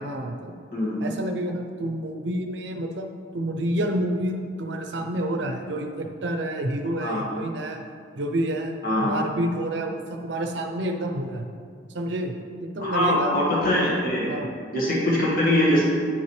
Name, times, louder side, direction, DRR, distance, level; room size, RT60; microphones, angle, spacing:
voice 1, 0.0-0.5 1.0-3.1 3.3-7.8 8.2-8.7 9.0-11.5 11.9-13.4 14.3-14.5, right 1 dB, 70° right, 4 dB, 0.6 m, -29 dB
voice 2, 8.8-9.2 12.8-14.3 14.7-15.8, left 1 dB, 50° left, -5 dB, 1.6 m, -22 dB
9.7 x 5.7 x 3.2 m, 2.2 s
head